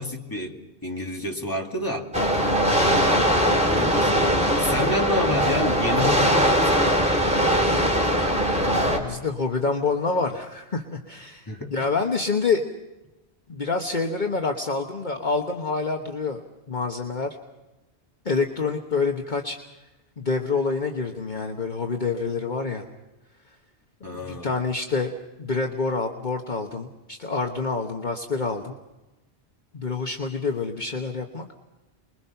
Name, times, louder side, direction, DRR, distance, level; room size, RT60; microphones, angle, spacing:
voice 1, 0.0-2.1 3.6-7.0 11.5-11.9 24.0-24.6, left 1 dB, 20° left, 1 dB, 2.4 m, -29 dB
sound 1, 2.1-9.0, equal, 5° right, 3.8 m, -21 dB
voice 2, 8.6-12.6 13.5-17.4 18.2-19.6 20.2-22.8 24.1-25.1 25.4-28.8 29.7-31.4, left 4 dB, 45° left, 3 dB, 1.4 m, -27 dB
29.0 x 22.0 x 5.8 m, 1.1 s
omnidirectional pair, 1.1 m